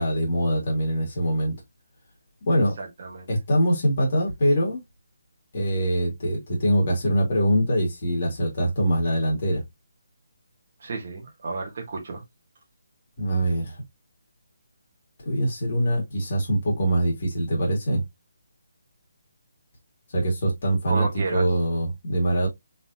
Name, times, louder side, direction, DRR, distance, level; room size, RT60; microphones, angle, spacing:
voice 1, 0.0-1.5 2.5-2.8 3.3-4.8 5.5-9.6 13.2-13.8 15.3-18.0 20.1-22.5, right 1 dB, 30° left, 2.1 m, -23 dB
voice 2, 2.5-3.3 10.8-12.2 20.9-21.4, right 4 dB, 30° right, 1.4 m, -32 dB
4.0 x 3.9 x 2.8 m
hypercardioid pair, 180°, 0 cm